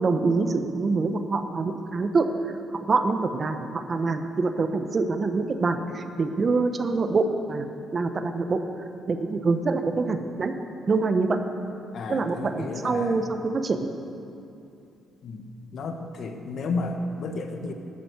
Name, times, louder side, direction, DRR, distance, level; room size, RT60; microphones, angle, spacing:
voice 1, 0.0-2.3 2.7-7.7 7.9-8.6 9.1-10.5 10.9-11.4 12.1-13.9, right 3 dB, 40° right, 8 dB, 1.0 m, -25 dB
voice 2, 11.9-13.2 15.2-15.4 15.7-17.7, left 3 dB, 65° left, 6 dB, 1.3 m, -32 dB
12.0 x 10.0 x 8.1 m, 2.7 s
cardioid pair, 90°, 0 cm